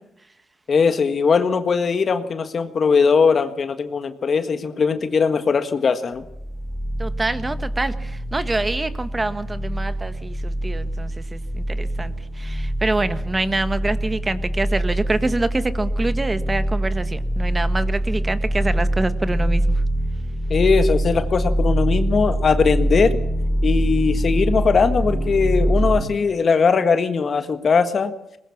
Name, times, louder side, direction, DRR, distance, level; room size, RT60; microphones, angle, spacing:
voice 1, 0.7-6.2 20.5-23.2 23.6-28.1, left 5 dB, 45° left, 9 dB, 1.6 m, -19 dB
sound 1, 6.2-26.0, right 1 dB, 20° left, 7.5 m, -24 dB
voice 2, 7.0-19.8, right 2 dB, 20° right, 12 dB, 1.5 m, -26 dB
21.5 x 20.0 x 7.2 m, 0.80 s
cardioid pair, 90°, 0 cm